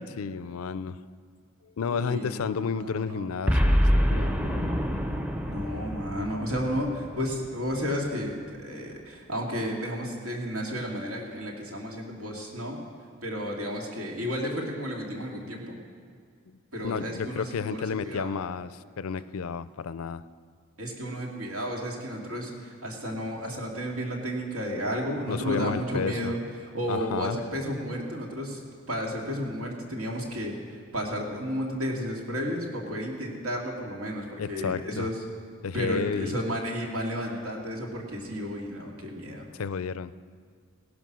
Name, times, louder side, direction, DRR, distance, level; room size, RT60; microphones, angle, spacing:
voice 1, 0.2-1.0 1.8-4.7 16.5-16.6 16.8-20.2 25.3-26.3 26.9-27.4 34.4-35.1 35.6-36.4 39.5-40.1, left 5 dB, 80° left, 15 dB, 0.4 m, -32 dB
voice 2, 1.9-3.3 5.4-12.8 13.2-15.8 16.7-18.3 20.8-28.6 28.9-35.1 35.7-39.5, equal, 85° right, -1 dB, 2.6 m, -32 dB
Boom, 3.5-7.9, equal, 5° right, 0.6 m, -26 dB
17.0 x 11.0 x 6.2 m, 2.2 s
head